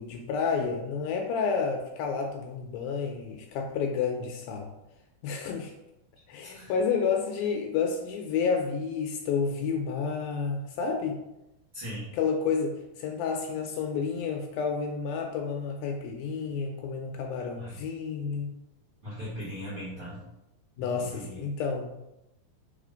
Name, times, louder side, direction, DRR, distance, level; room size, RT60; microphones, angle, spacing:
voice 1, 0.0-4.7 5.2-5.7 6.3-11.2 12.1-18.5 20.8-22.1, left 5 dB, 80° left, 3 dB, 2.2 m, -30 dB
voice 2, 6.4-6.7 11.7-12.1 17.6-17.8 19.0-20.2 20.8-21.4, equal, 60° right, -7 dB, 1.4 m, -39 dB
5.0 x 4.1 x 5.1 m, 0.89 s
omnidirectional pair, 4.5 m